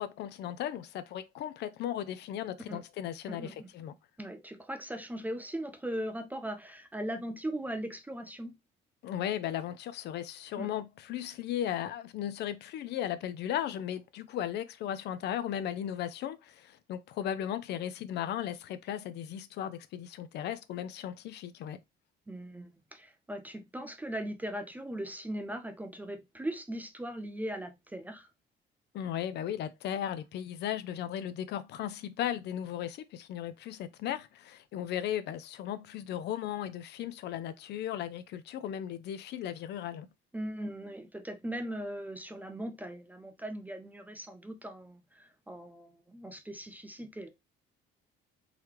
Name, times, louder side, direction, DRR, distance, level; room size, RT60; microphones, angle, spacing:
voice 1, 0.0-3.9 9.0-21.8 28.9-40.1, left 10 dB, 60° left, 0.4 m, -36 dB
voice 2, 3.3-3.7 4.2-8.5 10.6-10.7 22.3-28.3 40.3-47.3, right 1 dB, 10° right, 0.4 m, -39 dB
3.8 x 2.9 x 3.0 m
cardioid pair, 160°, 20 cm